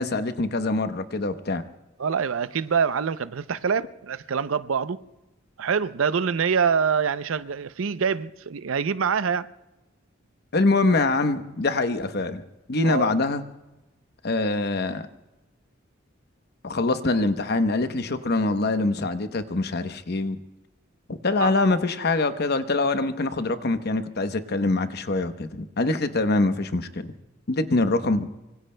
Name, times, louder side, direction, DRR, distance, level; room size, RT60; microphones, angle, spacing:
voice 1, 0.0-1.6 10.5-12.4 12.7-13.4 14.2-15.1 16.6-20.4 21.1-27.1 27.5-28.3, left 2 dB, 55° left, 0.9 m, -24 dB
voice 2, 2.0-5.0 5.6-9.5 12.8-13.1 21.4-21.5, right 6 dB, 75° right, 0.5 m, -25 dB
25.0 x 24.5 x 2.2 m
head